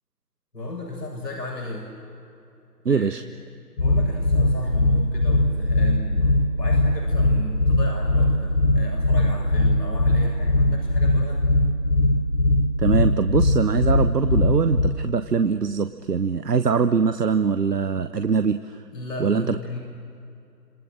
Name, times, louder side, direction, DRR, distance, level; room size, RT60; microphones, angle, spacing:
voice 1, 0.5-1.9 2.9-3.2 3.7-11.4 18.9-19.8, left 1 dB, 85° left, -2 dB, 7.4 m, -35 dB
voice 2, 2.8-3.2 12.8-18.6 19.2-19.6, right 5 dB, 75° right, 10 dB, 1.1 m, -22 dB
sound 1, 3.8-14.9, left 1 dB, 65° left, 6.0 m, -20 dB
29.5 x 27.5 x 6.5 m, 2.6 s
figure-of-eight pair, 160°, 48 cm